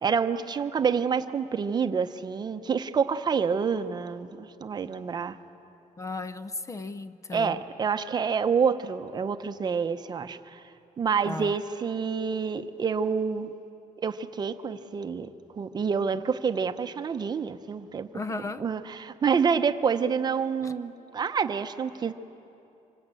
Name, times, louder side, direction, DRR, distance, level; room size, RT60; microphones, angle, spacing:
voice 1, 0.0-5.4 7.3-10.6 11.0-13.5 14.0-15.3 15.5-18.1 18.6-22.1, right 6 dB, 35° right, 9 dB, 0.8 m, -28 dB
voice 2, 6.0-7.6 11.2-11.5 18.1-18.7 20.6-20.7, left 3 dB, 25° left, 12 dB, 0.6 m, -35 dB
26.0 x 24.5 x 9.0 m, 2.8 s
cardioid pair, 175°, 13 cm